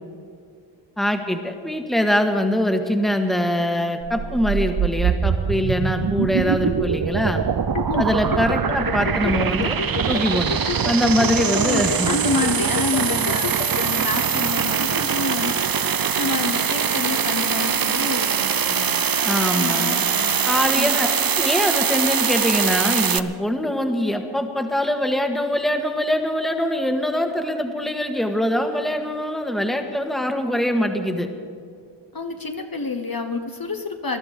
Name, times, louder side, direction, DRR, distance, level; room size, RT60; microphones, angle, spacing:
voice 1, 1.0-7.4 8.0-9.8 10.1-10.6 10.8-12.1 19.2-20.1 20.4-21.1 21.4-31.3, left 1 dB, ahead, 5 dB, 1.4 m, -23 dB
sound 1, 4.0-23.2, right 7 dB, 50° right, 0.6 m, -23 dB
sound 2, 7.7-13.8, left 7 dB, 80° left, 0.9 m, -29 dB
voice 2, 7.9-8.4 11.4-15.6 16.2-19.0 19.5-21.0 32.1-34.2, left 3 dB, 50° left, 4 dB, 1.2 m, -28 dB
20.0 x 12.5 x 5.2 m, 2.3 s
wide cardioid pair, 45°, 46 cm